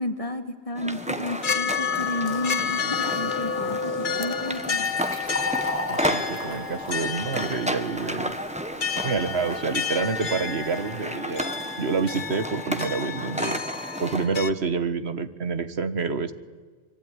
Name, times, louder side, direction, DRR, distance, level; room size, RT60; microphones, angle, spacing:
voice 1, 0.0-5.0, left 1 dB, 30° left, 6 dB, 2.4 m, -32 dB
sound 1, 0.7-14.3, equal, 5° right, 1.5 m, -33 dB
sound 2, 0.9-14.5, left 6 dB, 50° left, 1.3 m, -31 dB
Fill (with liquid), 4.5-11.9, left 1 dB, 10° left, 7.7 m, -38 dB
voice 2, 5.9-8.4 9.0-11.5 11.8-13.6 14.0-16.3, right 4 dB, 70° right, 11 dB, 1.7 m, -28 dB
25.0 x 24.0 x 9.9 m, 1.5 s
omnidirectional pair, 1.1 m